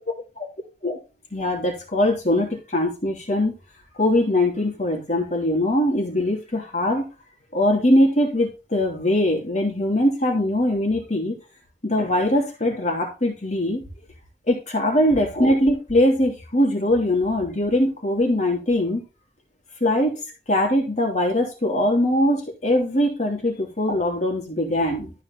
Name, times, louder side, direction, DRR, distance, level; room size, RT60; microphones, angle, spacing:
voice 1, 1.3-3.5 3.9-7.1 7.5-11.4 11.8-13.8 14.5-19.0 19.8-20.2 20.5-25.1, left 1 dB, 40° left, 1 dB, 2.9 m, -21 dB
13.0 x 4.8 x 5.3 m, 0.30 s
head